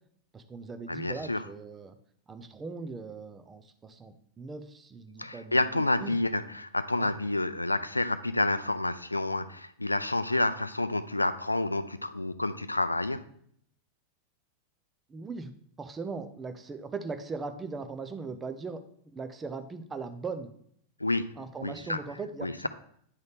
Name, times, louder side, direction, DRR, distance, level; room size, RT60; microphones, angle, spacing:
voice 1, 0.3-2.0 2.3-6.2 7.0-7.2 15.1-15.5 15.8-20.5 21.4-22.7, right 4 dB, 20° right, 8 dB, 0.6 m, -39 dB
voice 2, 0.9-1.4 5.2-13.2 21.0-21.3 21.6-22.0 22.4-22.7, left 2 dB, 85° left, 13 dB, 0.4 m, -29 dB
9.7 x 4.0 x 3.4 m, 0.66 s
figure-of-eight pair, 90°, 0 cm